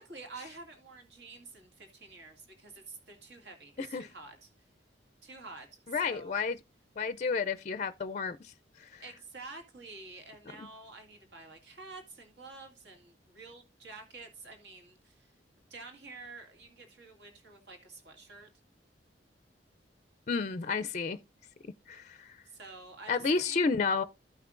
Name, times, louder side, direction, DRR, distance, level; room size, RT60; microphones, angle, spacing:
voice 1, 0.0-4.5 5.2-6.3 9.0-15.3 15.7-18.5 22.5-23.6, right 3 dB, 70° right, 2.2 m, -49 dB
voice 2, 3.8-4.1 5.9-6.6 7.0-9.0 20.3-21.2 21.9-22.4 23.1-24.0, left 4 dB, 40° left, 0.4 m, -31 dB
14.5 x 5.8 x 2.4 m
head